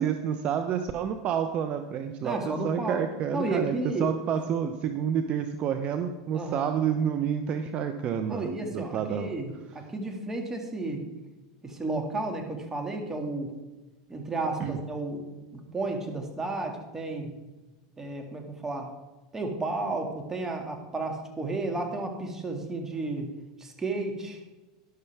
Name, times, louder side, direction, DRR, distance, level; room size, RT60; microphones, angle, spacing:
voice 1, 0.0-9.3 14.6-14.8, right 8 dB, 45° right, 8 dB, 0.8 m, -29 dB
voice 2, 2.2-3.0 3.3-4.1 6.3-6.7 8.3-11.1 11.6-13.5 14.1-15.4 15.7-17.3 18.0-18.9 19.3-23.3 23.6-24.4, right 2 dB, 15° right, 3 dB, 2.2 m, -32 dB
12.5 x 11.0 x 3.5 m, 1.1 s
supercardioid pair, 115°, 3 cm